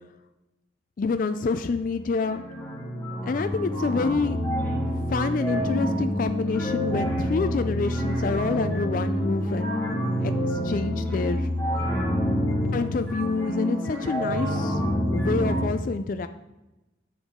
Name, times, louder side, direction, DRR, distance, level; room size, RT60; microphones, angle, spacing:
voice 1, 1.0-2.4 3.3-4.4 4.8-9.7 10.2-11.5 12.7-14.8 15.1-16.3, left 4 dB, 45° left, 9 dB, 0.3 m, -27 dB
sound 1, 1.5-1.9 2.2-15.6, equal, 10° left, 1.7 m, -27 dB
9.8 x 7.1 x 3.7 m, 1.0 s
head